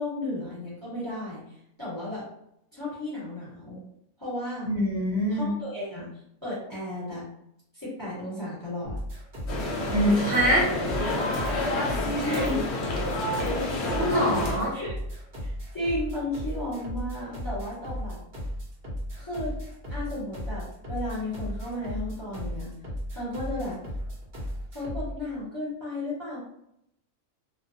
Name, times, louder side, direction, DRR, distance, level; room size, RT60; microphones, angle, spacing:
voice 1, 0.0-1.4 1.8-2.3 2.7-3.8 4.2-4.7 5.3-6.1 6.4-7.3 7.7-9.0 12.2-12.9 14.7-14.9 15.4-18.2 19.2-19.5 19.9-22.7 23.1-23.8 24.7-26.4, left 1 dB, 15° left, -9 dB, 1.2 m, -34 dB
voice 2, 4.6-5.5 9.9-10.7 13.9-14.8, equal, 65° right, -5 dB, 1.2 m, -24 dB
sound 1, 8.8-25.1, equal, 45° right, 0.8 m, -35 dB
sound 2, 9.5-14.6, left 1 dB, 60° left, 0.8 m, -28 dB
2.4 x 2.2 x 2.7 m, 0.75 s
omnidirectional pair, 1.4 m